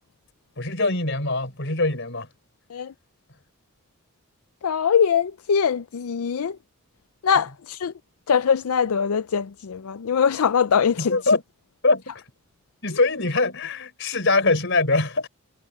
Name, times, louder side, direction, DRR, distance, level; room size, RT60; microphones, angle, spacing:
voice 1, 0.6-2.3 11.0-11.4 11.8-12.1 12.8-15.3, left 3 dB, 55° left, 5.0 m, -22 dB
voice 2, 4.6-6.6 7.2-7.9 8.3-11.2, left 7 dB, 85° left, 0.5 m, -22 dB
head